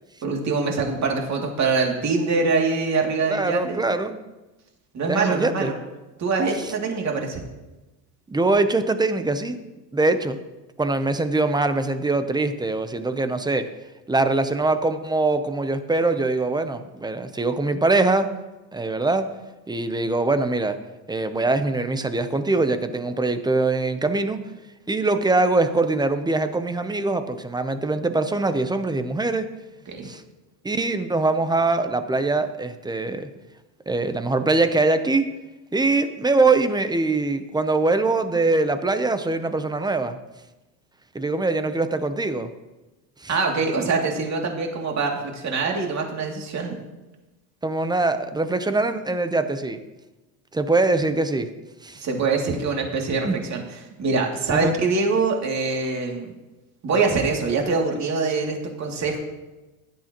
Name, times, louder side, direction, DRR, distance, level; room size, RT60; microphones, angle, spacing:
voice 1, 0.2-3.8 4.9-5.7 6.2-7.4 29.9-30.1 43.3-46.8 51.9-53.6 54.0-56.3 56.8-59.2, right 4 dB, 35° right, 1 dB, 2.6 m, -24 dB
voice 2, 3.3-4.2 5.1-5.7 8.3-9.6 9.9-10.4 10.8-13.7 14.1-18.3 18.7-19.3 19.7-20.8 21.1-24.4 24.9-29.5 30.0-30.2 30.6-33.3 33.9-35.3 35.7-40.2 41.1-42.5 43.2-43.3 47.6-49.8 50.5-51.5 51.8-52.0 53.2-53.5 53.9-54.0 54.5-54.7, right 3 dB, 10° right, 9 dB, 0.7 m, -23 dB
16.0 x 11.0 x 3.0 m, 1.1 s
supercardioid pair, 120°, 48 cm